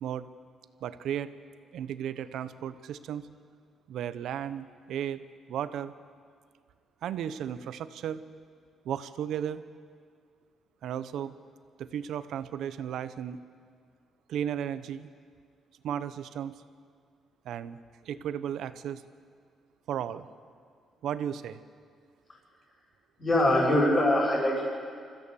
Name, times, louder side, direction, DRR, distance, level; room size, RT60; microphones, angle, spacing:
voice 1, 0.8-1.3 1.7-3.3 3.9-5.2 5.5-5.9 7.0-8.2 8.8-9.6 10.8-11.4 11.8-13.4 14.3-15.1 15.8-16.6 17.4-17.8 18.0-19.0 19.9-20.3 21.0-21.6, right 9 dB, 75° right, 13 dB, 0.8 m, -34 dB
voice 2, 23.2-24.7, left 1 dB, 30° left, -8 dB, 6.3 m, -23 dB
25.5 x 14.5 x 7.0 m, 2.1 s
cardioid pair, 90°, 0 cm